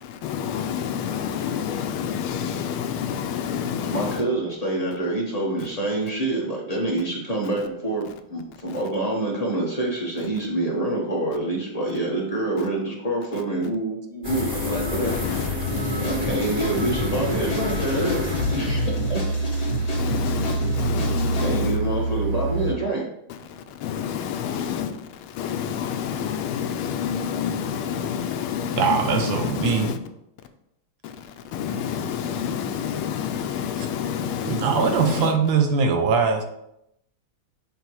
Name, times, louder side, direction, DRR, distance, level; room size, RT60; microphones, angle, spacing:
voice 1, 0.0-4.2 15.0-15.5 19.9-21.8 23.8-24.9 25.3-30.0 31.0-31.1 31.5-35.3, left 8 dB, 85° left, 1.5 m, -28 dB
voice 2, 3.8-15.6 15.9-18.2 18.5-19.2 21.4-23.0 24.5-24.7, right 2 dB, 30° left, 0.8 m, -27 dB
sound 1, 14.2-22.7, equal, 15° right, 1.4 m, -26 dB
sound 2, 15.7-21.5, left 1 dB, 45° left, 2.2 m, -32 dB
voice 3, 28.8-29.9 33.8-33.9 34.5-36.4, right 5 dB, 75° right, 1.4 m, -21 dB
6.7 x 3.0 x 4.6 m
omnidirectional pair, 2.3 m